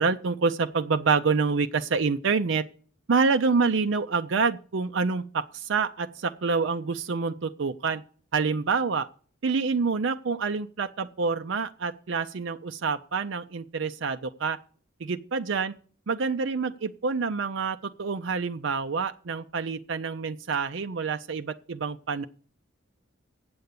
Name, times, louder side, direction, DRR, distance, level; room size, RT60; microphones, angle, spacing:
voice 1, 0.0-2.6 3.1-8.0 8.3-9.1 9.4-14.6 15.0-15.7 16.1-22.2, right 4 dB, 60° right, 9 dB, 0.5 m, -27 dB
8.0 x 7.7 x 8.4 m, 0.42 s
head